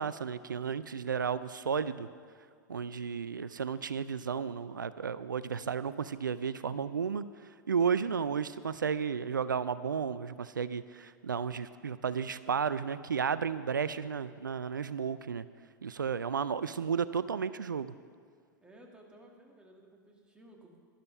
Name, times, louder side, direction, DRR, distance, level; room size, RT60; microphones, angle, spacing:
voice 1, 0.0-2.1 2.7-15.5 15.8-17.9, right 6 dB, 80° right, 15 dB, 0.4 m, -33 dB
voice 2, 18.6-20.8, right 1 dB, 10° right, 0 dB, 2.1 m, -56 dB
12.0 x 11.5 x 5.5 m, 2.1 s
figure-of-eight pair, 95°, 10 cm